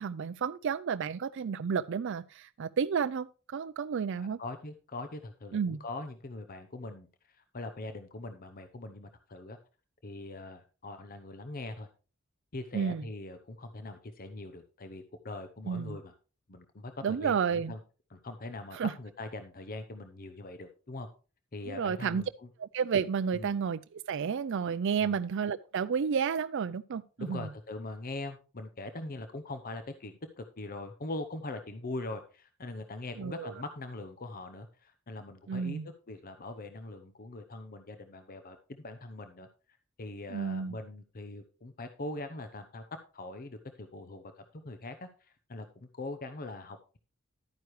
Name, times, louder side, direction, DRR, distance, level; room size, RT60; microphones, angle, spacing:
voice 1, 0.0-4.4 5.5-5.8 12.7-13.0 15.7-16.0 17.0-17.7 18.7-18.9 21.7-22.2 22.6-27.5 33.2-33.5 35.5-35.9 40.3-40.8, right 6 dB, 60° right, 0.4 m, -31 dB
voice 2, 4.2-9.6 10.0-11.9 12.5-16.2 16.5-17.8 18.1-21.1 21.5-22.5 23.3-23.5 25.0-25.2 27.2-35.8 36.1-39.5 40.0-42.8 43.1-47.0, left 2 dB, 45° left, 0.8 m, -42 dB
11.5 x 9.3 x 3.1 m
head